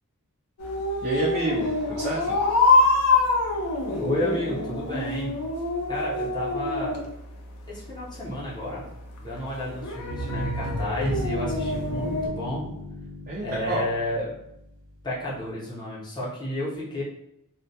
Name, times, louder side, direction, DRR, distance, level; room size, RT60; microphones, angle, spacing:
sound 1, 0.6-12.3, left 2 dB, 90° left, 0.4 m, -26 dB
voice 1, 1.0-2.4 9.6-9.7 13.3-13.8, right 2 dB, 40° right, -4 dB, 0.4 m, -28 dB
voice 2, 4.0-5.4 5.9-7.0 7.7-8.8 9.2-12.7 13.4-14.3 15.0-17.0, left 1 dB, 20° left, -6 dB, 0.7 m, -31 dB
sound 2, 10.1-14.9, equal, 75° right, 0.7 m, -34 dB
2.2 x 2.1 x 2.6 m, 0.81 s
head